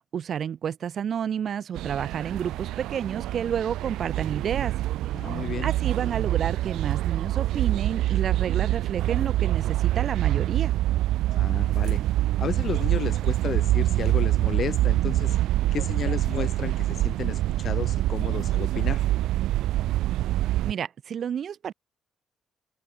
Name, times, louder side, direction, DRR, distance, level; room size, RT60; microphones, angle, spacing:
voice 1, 0.0-4.7 5.3-10.7 20.6-21.7, right 8 dB, 60° right, 4.1 m, -30 dB
sound 1, 1.7-20.7, right 15 dB, 90° right, 0.4 m, -25 dB
voice 2, 5.1-5.7 11.3-12.0 12.4-15.4 15.7-19.0, left 8 dB, 55° left, 5.7 m, -33 dB
open air
cardioid pair, 90°, 0 cm